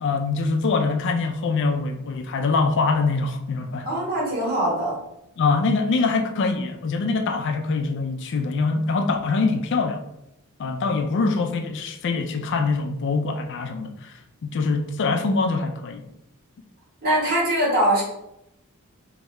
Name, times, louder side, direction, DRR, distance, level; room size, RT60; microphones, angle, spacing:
voice 1, 0.0-3.9 5.4-10.0 10.6-16.0, left 4 dB, 55° left, 0.4 m, -24 dB
voice 2, 3.8-5.0 17.0-18.0, right 1 dB, 45° right, 1.5 m, -22 dB
3.3 x 2.7 x 3.1 m
head